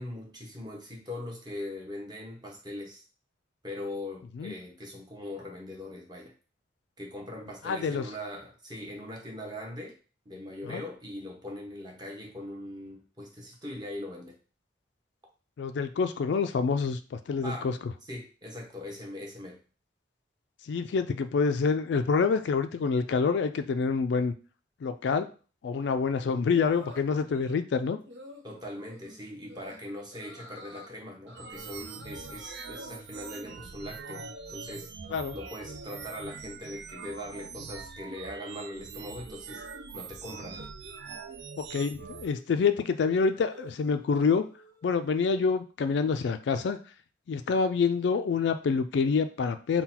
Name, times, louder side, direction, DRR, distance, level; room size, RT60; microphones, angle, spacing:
voice 1, 0.0-3.0 3.6-6.3 7.0-10.0 10.2-14.4 17.4-17.7 18.0-19.6 28.4-34.9 35.3-39.6 39.9-40.6, left 1 dB, 25° right, -1 dB, 1.0 m, -41 dB
voice 2, 7.6-8.1 10.6-10.8 15.6-17.8 20.7-24.3 24.8-25.3 25.6-28.0 35.1-35.3 41.6-44.5 44.8-46.8 47.3-49.8, left 5 dB, 70° left, 9 dB, 0.3 m, -27 dB
sound 1, 26.5-27.7 28.1-28.4 28.9-29.2 29.5-29.8 30.1-30.9 31.3-34.7 35.0-36.3 36.6-37.1 37.3-45.5, left 1 dB, 75° right, 0.9 m, -50 dB
sound 2, 31.4-42.3, right 5 dB, 60° right, 0.4 m, -43 dB
3.8 x 2.2 x 4.2 m, 0.37 s
head